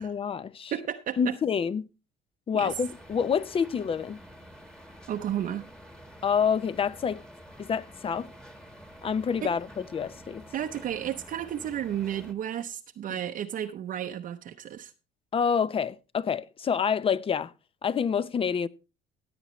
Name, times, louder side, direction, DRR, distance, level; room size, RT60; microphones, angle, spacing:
voice 1, 0.0-0.7 1.2-1.9 2.5-4.2 6.2-7.2 7.6-8.3 9.0-10.4 15.3-17.5 17.8-18.7, left 7 dB, 35° left, 0.6 m, -27 dB
voice 2, 0.7-1.3 2.5-2.7 5.1-5.6 9.4-9.5 10.5-14.9, right 10 dB, 55° right, 0.7 m, -33 dB
sound 1, 2.6-12.3, equal, 5° left, 1.4 m, -49 dB
15.5 x 8.6 x 3.1 m
cardioid pair, 110°, 17 cm